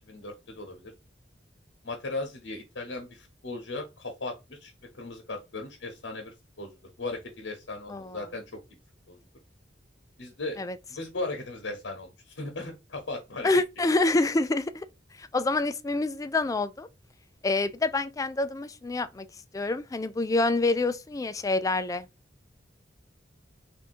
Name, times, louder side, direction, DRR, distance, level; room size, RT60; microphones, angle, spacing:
voice 1, 0.1-0.9 1.8-8.6 9.1-9.2 10.2-10.6 10.9-13.6, left 2 dB, 90° left, 1.0 m, -37 dB
voice 2, 7.9-8.2 10.6-10.8 13.4-14.9 15.2-16.9 17.4-19.3 19.5-22.1, left 2 dB, 20° left, 0.3 m, -27 dB
3.5 x 2.7 x 4.3 m
head